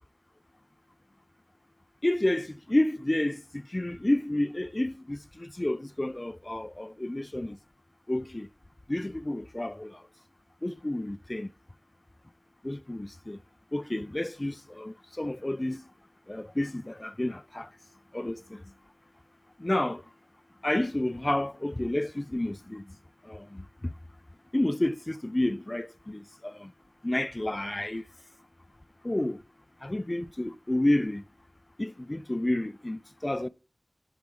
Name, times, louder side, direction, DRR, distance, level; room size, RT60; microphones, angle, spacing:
voice 1, 2.0-7.6 8.1-8.5 8.9-10.0 10.6-11.5 12.6-13.4 13.7-15.8 16.3-17.7 18.1-18.6 19.6-20.0 20.6-23.0 23.2-23.9 24.5-26.7 27.0-28.0 29.0-29.4 29.8-31.2 31.8-33.5, left 1 dB, 30° left, 0.5 m, -30 dB
11.0 x 4.7 x 3.7 m
wide cardioid pair, 55°, 0 cm